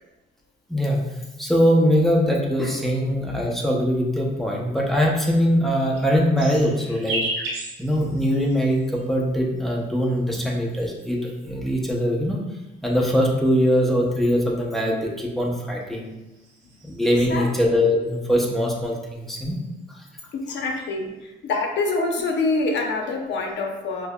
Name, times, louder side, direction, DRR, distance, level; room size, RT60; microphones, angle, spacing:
voice 1, 0.7-1.0 1.4-7.2 7.8-12.4 12.8-16.1 16.8-19.6 19.9-20.0, equal, ahead, -2 dB, 0.7 m, -22 dB
sound 1, 5.6-9.1 10.0-11.4 12.2-14.1 15.5-17.6 18.0-18.5 18.8-19.9 20.3-20.9, right 1 dB, 75° right, 1.1 m, -36 dB
voice 2, 20.3-24.1, left 3 dB, 65° left, 2 dB, 0.7 m, -26 dB
5.3 x 2.1 x 2.3 m, 1.0 s
cardioid pair, 90°, 20 cm